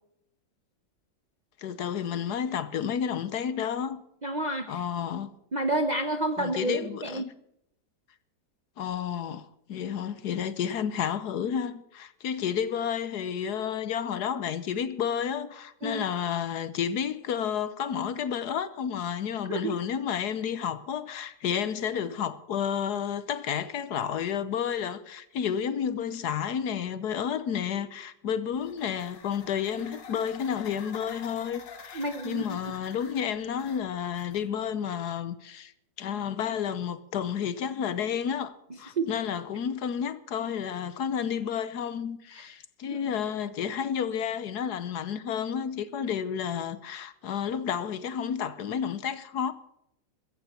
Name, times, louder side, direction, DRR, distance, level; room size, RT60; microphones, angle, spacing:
voice 1, 1.6-4.0 4.7-5.3 6.4-7.3 8.8-35.7 36.0-49.5, left 8 dB, 70° left, 1.4 m, -31 dB
voice 2, 4.2-4.8 5.5-7.2 15.8-16.0 19.5-19.8 31.9-32.6 39.0-39.1 42.9-43.0, right 2 dB, 35° right, 0.7 m, -29 dB
sound 1, 28.5-34.7, left 6 dB, 85° left, 2.4 m, -48 dB
15.0 x 14.5 x 4.2 m
omnidirectional pair, 1.9 m